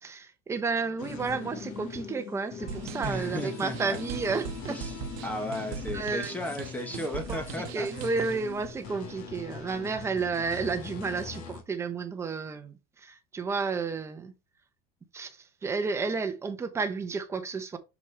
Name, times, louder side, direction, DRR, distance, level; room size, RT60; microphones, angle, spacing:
voice 1, 0.0-4.8 5.9-6.4 7.3-7.4 7.7-14.3 15.1-17.8, right 4 dB, 15° right, 1.0 m, -32 dB
sound 1, 1.0-11.6, left 6 dB, 50° left, 1.9 m, -41 dB
sound 2, 2.7-8.5, right 8 dB, 75° right, 1.1 m, -41 dB
voice 2, 3.0-4.0 4.7-5.0 5.2-7.9, left 1 dB, 10° left, 1.1 m, -35 dB
6.5 x 5.7 x 3.4 m
cardioid pair, 155°, 18 cm